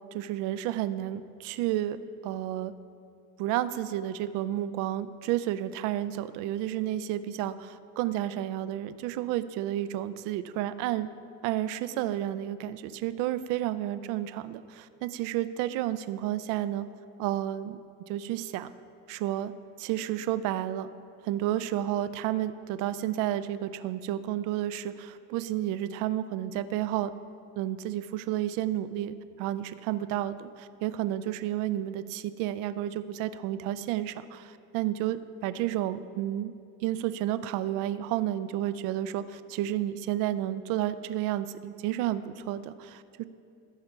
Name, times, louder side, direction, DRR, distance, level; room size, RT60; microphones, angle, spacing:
voice 1, 0.1-2.0 2.2-2.7 3.4-11.1 11.4-16.9 17.2-17.8 18.1-18.7 19.1-19.5 19.8-20.9 21.2-27.1 27.6-36.5 36.8-43.2, right 13 dB, 70° right, 13 dB, 0.5 m, -31 dB
14.5 x 5.6 x 4.4 m, 2.4 s
cardioid pair, 155°, 32 cm